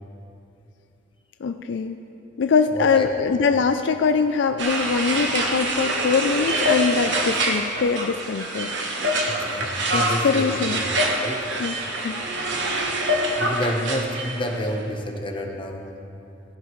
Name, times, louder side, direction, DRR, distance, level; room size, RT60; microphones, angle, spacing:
voice 1, 1.4-2.0 2.4-8.7 9.9-10.8 11.6-12.2, left 5 dB, 65° left, 8 dB, 0.4 m, -23 dB
voice 2, 2.7-3.3 9.4-10.8 11.2-11.4 13.4-15.8, equal, 25° left, 2 dB, 1.0 m, -29 dB
sound 1, 4.6-14.6, right 1 dB, 65° right, 1.2 m, -25 dB
15.5 x 14.0 x 3.2 m, 2.8 s
head